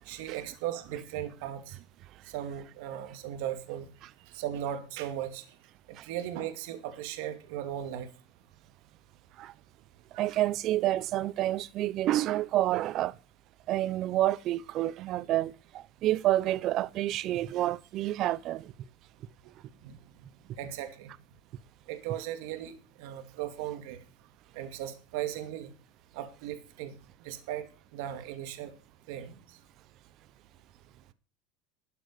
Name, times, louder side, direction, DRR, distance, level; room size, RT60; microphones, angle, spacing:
voice 1, 0.1-1.8 2.3-3.9 4.3-5.4 6.0-8.1 10.1-10.3 19.8-20.0 20.6-21.1 21.9-22.7 23.0-24.0 24.5-25.7 26.1-26.9 27.2-27.7 27.9-28.7 29.1-29.3, right 11 dB, 65° right, 2.2 m, -37 dB
voice 2, 10.2-13.1 13.7-18.7, right 14 dB, 40° right, 0.6 m, -29 dB
13.0 x 8.1 x 6.7 m
supercardioid pair, 155°, 0 cm